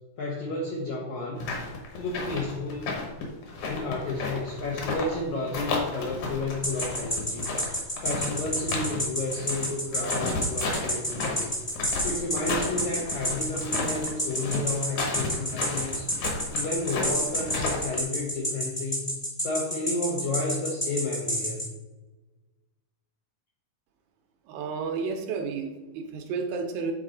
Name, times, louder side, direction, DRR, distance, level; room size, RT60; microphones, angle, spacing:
voice 1, 0.2-1.5 1.9-3.0 3.6-11.5 12.0-16.1 16.5-19.1 19.4-21.6, left 2 dB, 85° left, -2 dB, 1.6 m, -32 dB
sound 1, 1.4-5.2 5.5-9.0 9.3-18.0, left 3 dB, 65° left, 2.0 m, -32 dB
sound 2, 6.6-21.7, equal, 10° left, 0.7 m, -29 dB
voice 2, 24.5-26.9, right 5 dB, 75° right, 4 dB, 2.4 m, -31 dB
8.8 x 4.1 x 3.7 m, 1.2 s
omnidirectional pair, 4.6 m